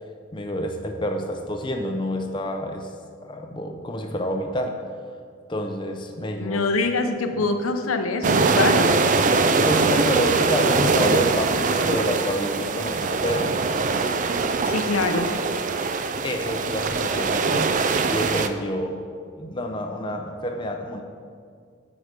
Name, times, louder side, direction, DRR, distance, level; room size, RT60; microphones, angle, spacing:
voice 1, 0.3-2.9 3.2-4.8 5.5-6.7 7.3-7.4 9.2-13.6 16.2-17.8 18.1-19.0 19.4-21.0, equal, 20° left, 4 dB, 0.6 m, -28 dB
voice 2, 6.3-8.9 14.7-15.3, left 3 dB, 85° left, 6 dB, 0.8 m, -24 dB
sound 1, 8.2-18.5, right 4 dB, 35° right, 0.4 m, -22 dB
8.8 x 4.9 x 6.7 m, 2.2 s
head